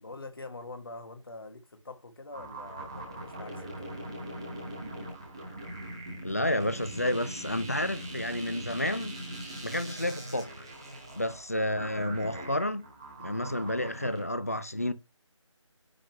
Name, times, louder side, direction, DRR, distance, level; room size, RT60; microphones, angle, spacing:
voice 1, 0.0-3.9 11.7-11.9, left 2 dB, 45° left, 1.7 m, -45 dB
sound 1, 2.3-14.2, right 1 dB, 10° right, 1.0 m, -41 dB
voice 2, 6.2-9.2 9.6-10.7 11.1-12.9 13.2-14.9, left 1 dB, 30° left, 0.5 m, -30 dB
9.4 x 4.0 x 3.1 m
figure-of-eight pair, 175°, 17 cm